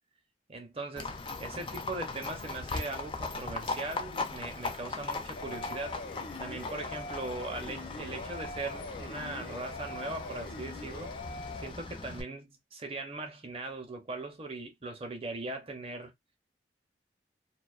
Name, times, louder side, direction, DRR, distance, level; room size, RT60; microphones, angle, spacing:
voice 1, 0.5-6.0 6.4-11.1 11.6-16.1, right 2 dB, 35° right, 0.6 m, -40 dB
Livestock farm animals working animals, 1.0-12.2, left 3 dB, 30° left, 0.3 m, -39 dB
sound 1, 5.4-11.7, left 3 dB, 75° left, 0.7 m, -43 dB
2.4 x 2.2 x 2.3 m
head